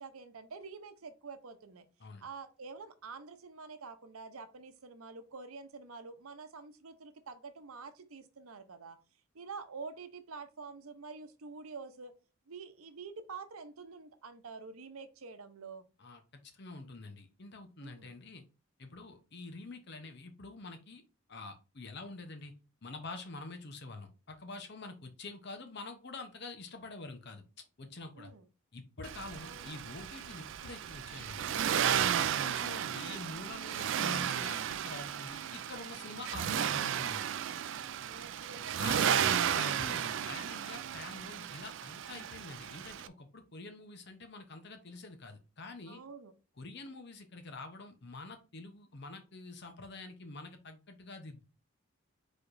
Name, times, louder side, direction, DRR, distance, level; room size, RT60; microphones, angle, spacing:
voice 1, 0.0-1.8 2.2-9.0 9.3-12.1 12.5-15.8 17.8-18.1 28.2-28.4 29.4-29.8 38.0-39.1 45.9-46.3, right 4 dB, 85° right, 0.8 m, -47 dB
voice 2, 16.0-18.4 18.8-21.0 21.3-22.5 22.8-28.3 28.7-31.6 32.2-37.3 38.8-46.0 46.6-51.4, left 3 dB, 50° left, 0.8 m, -46 dB
Accelerating revving vroom, 29.0-43.1, right 9 dB, 60° right, 0.3 m, -34 dB
4.8 x 4.2 x 2.6 m
head